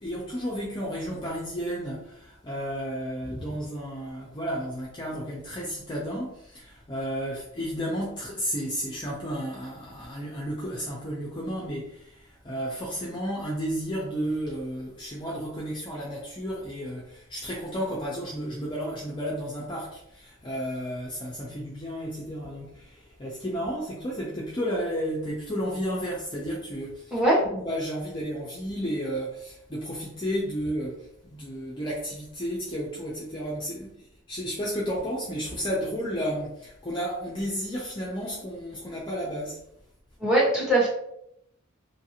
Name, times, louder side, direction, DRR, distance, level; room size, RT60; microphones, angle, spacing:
voice 1, 0.0-39.6, equal, 20° left, 0.4 m, -32 dB
voice 2, 27.1-27.4 40.2-40.9, right 1 dB, 5° right, 0.9 m, -21 dB
3.1 x 2.5 x 2.8 m
head